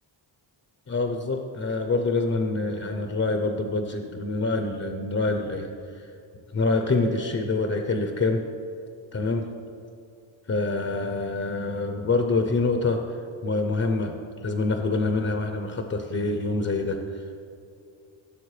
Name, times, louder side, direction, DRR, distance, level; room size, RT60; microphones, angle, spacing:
voice 1, 0.9-6.0 6.5-8.4 9.1-9.5 10.5-14.1 14.4-17.3, left 3 dB, 30° left, 4 dB, 0.8 m, -26 dB
15.5 x 6.8 x 3.3 m, 2.5 s
cardioid pair, 80°, 48 cm